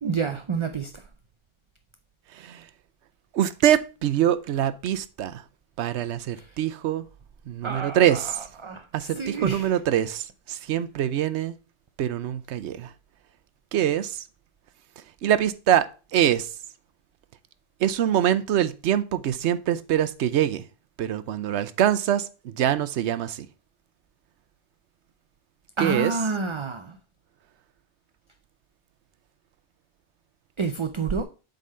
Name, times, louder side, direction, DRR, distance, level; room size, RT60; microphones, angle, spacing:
voice 1, 0.0-1.0 6.4-6.5 7.6-9.7 25.8-27.0 30.6-31.2, right 4 dB, 40° right, 0.4 m, -29 dB
voice 2, 3.3-5.3 5.8-7.0 7.5-8.3 8.9-10.2 10.5-11.5 12.0-12.9 13.7-14.1 15.2-15.9 16.1-16.5 17.8-20.6 21.0-22.2 22.6-23.4 25.8-26.2, right 11 dB, 85° right, 0.9 m, -24 dB
7.8 x 3.7 x 5.5 m
omnidirectional pair, 1.1 m